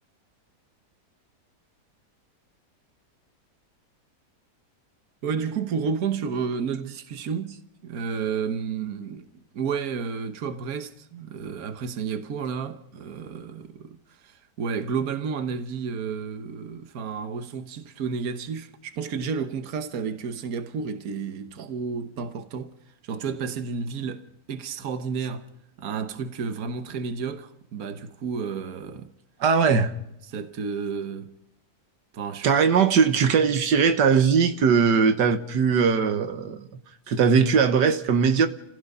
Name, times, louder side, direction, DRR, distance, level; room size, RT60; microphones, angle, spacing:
voice 1, 5.2-9.3 9.5-14.0 14.2-22.8 23.0-25.5 25.8-29.1 30.3-31.3 32.1-32.5, right 6 dB, 60° right, 1.6 m, -31 dB
voice 2, 29.4-29.9 32.4-36.7 37.1-38.5, right 6 dB, 85° right, 1.7 m, -20 dB
30.0 x 15.5 x 5.5 m
omnidirectional pair, 1.8 m